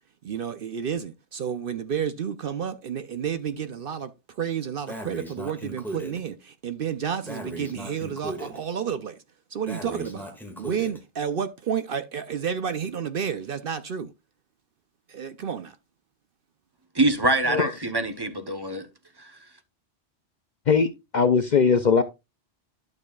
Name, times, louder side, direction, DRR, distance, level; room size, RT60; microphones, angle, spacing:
voice 1, 0.2-4.1 4.4-9.2 9.5-10.3 10.6-14.1 15.1-15.7, right 7 dB, 60° right, 0.7 m, -30 dB
Breathing, 4.9-6.2 7.3-8.6 9.7-11.0, right 1 dB, ahead, 1.9 m, -37 dB
voice 2, 16.9-18.9 19.2-19.3, right 2 dB, 25° right, 0.8 m, -24 dB
voice 3, 20.7-22.0, left 5 dB, 50° left, 0.6 m, -20 dB
12.0 x 6.5 x 2.3 m
omnidirectional pair, 1.2 m